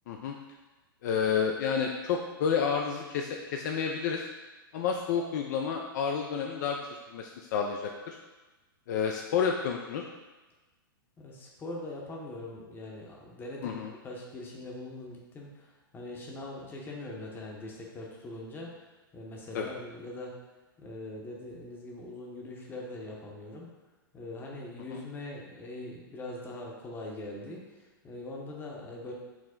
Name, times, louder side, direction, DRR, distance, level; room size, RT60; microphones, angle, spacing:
voice 1, 1.0-4.3 4.7-6.8 7.1-8.2 8.9-10.0 13.6-13.9 19.5-19.7 24.9-25.0, left 6 dB, 50° left, 2 dB, 0.4 m, -30 dB
voice 2, 11.2-18.9 19.1-20.4 20.8-23.7 24.1-29.1, left 2 dB, 15° left, -2 dB, 0.8 m, -42 dB
4.8 x 2.0 x 3.7 m, 1.1 s
hypercardioid pair, 110°, 12 cm